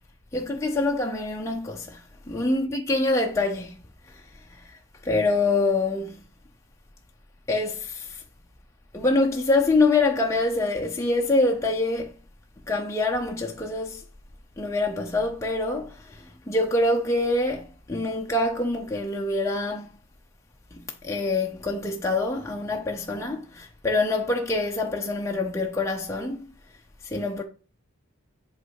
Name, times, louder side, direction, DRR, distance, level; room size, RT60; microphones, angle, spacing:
voice 1, 0.3-3.8 4.1-4.2 4.5-4.8 5.0-6.2 7.5-8.2 8.9-12.1 12.7-14.0 14.6-19.9 20.7-26.5 27.0-27.4, left 2 dB, 15° left, 0.6 m, -25 dB
7.9 x 3.2 x 4.7 m
head